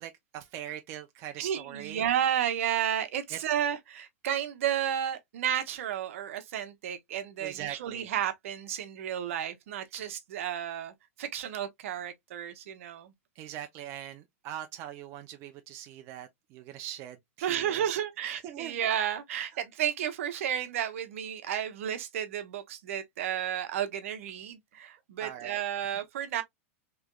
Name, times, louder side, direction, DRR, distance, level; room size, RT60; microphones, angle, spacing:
voice 1, 0.0-2.0 3.3-3.4 7.4-8.1 13.4-18.0 18.4-18.8 25.2-25.6, right 11 dB, 40° right, 0.5 m, -41 dB
voice 2, 1.4-13.1 17.4-26.4, right 10 dB, 75° right, 0.9 m, -32 dB
3.4 x 3.0 x 2.3 m
supercardioid pair, 135°, 7 cm